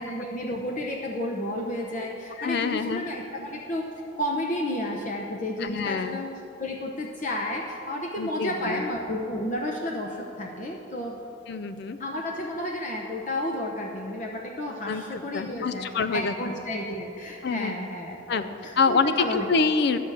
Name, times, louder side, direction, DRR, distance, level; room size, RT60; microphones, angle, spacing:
voice 1, 0.0-3.9 4.2-11.2 12.0-19.5, left 1 dB, 40° left, 0 dB, 0.8 m, -32 dB
voice 2, 2.4-3.1 5.6-6.2 8.2-8.8 11.5-12.0 14.9-16.3 17.4-17.8 18.3-18.4 18.8-20.0, left 4 dB, 55° left, 11 dB, 0.4 m, -26 dB
10.5 x 6.9 x 7.5 m, 2.8 s
head